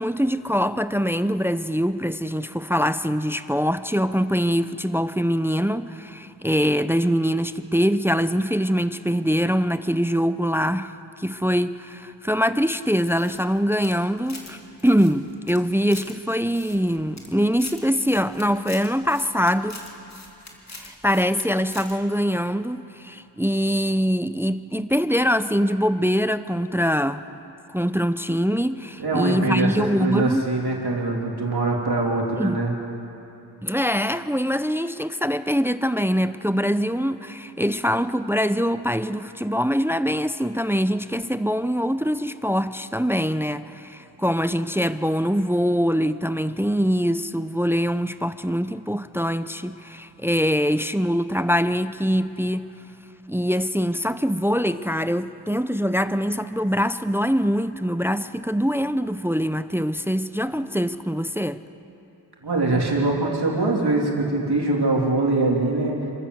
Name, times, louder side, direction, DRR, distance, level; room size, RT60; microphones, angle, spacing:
voice 1, 0.0-19.8 20.8-27.2 27.7-30.5 32.4-32.6 33.6-52.7 53.3-61.6, equal, 5° right, 0.6 m, -23 dB
sound 1, 13.0-14.5 14.8-16.1 16.5-17.3 17.6-21.4 21.7-21.9, left 2 dB, 40° left, 3.0 m, -43 dB
voice 2, 29.0-32.7 62.4-66.0, right 2 dB, 70° right, 3.3 m, -23 dB
27.5 x 13.5 x 8.0 m
wide cardioid pair, 55°, 40 cm